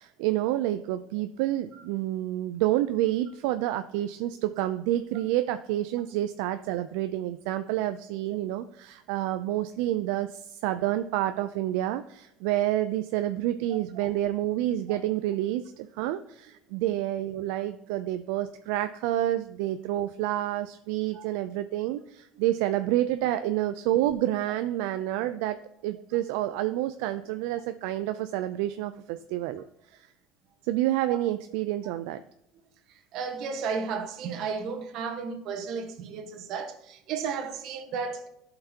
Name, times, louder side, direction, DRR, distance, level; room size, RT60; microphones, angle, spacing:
voice 1, 0.0-25.6 25.8-29.6 29.9-30.1 30.6-32.2, right 14 dB, 80° right, 0.4 m, -28 dB
voice 2, 33.1-38.3, right 5 dB, 60° right, 1.3 m, -33 dB
11.0 x 5.8 x 2.9 m
supercardioid pair, 105°, 0 cm